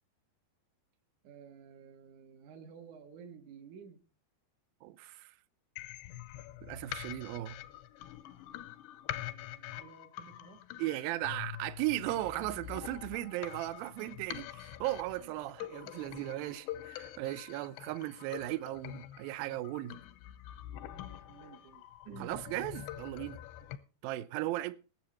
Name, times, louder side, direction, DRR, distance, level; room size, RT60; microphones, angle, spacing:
voice 1, 1.2-4.0 9.2-10.6 13.8-14.1 15.1-15.3 15.6-16.3 17.0-17.1 20.9-22.4 23.3-23.7, right 6 dB, 60° right, 2.1 m, -54 dB
voice 2, 4.8-5.3 6.6-7.6 10.8-20.0 22.2-23.4 24.0-24.8, right 16 dB, 80° right, 2.1 m, -37 dB
sound 1, 5.8-23.8, left 13 dB, 85° left, 3.0 m, -45 dB
20.0 x 7.6 x 4.3 m
omnidirectional pair, 5.0 m